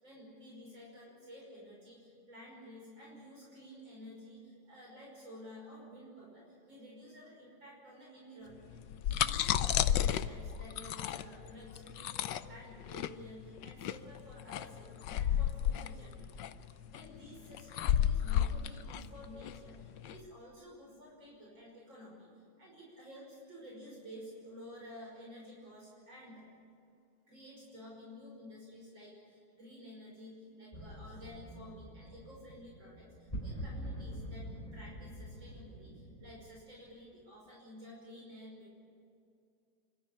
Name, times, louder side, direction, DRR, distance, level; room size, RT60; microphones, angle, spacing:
voice 1, 0.0-16.5 16.9-26.5 27.3-38.7, equal, 60° right, -3 dB, 6.2 m, -52 dB
sound 1, 8.7-20.2, left 10 dB, 65° left, 1.2 m, -32 dB
sound 2, 30.7-36.5, equal, 15° left, 4.1 m, -45 dB
27.0 x 13.5 x 9.9 m, 2.5 s
omnidirectional pair, 2.4 m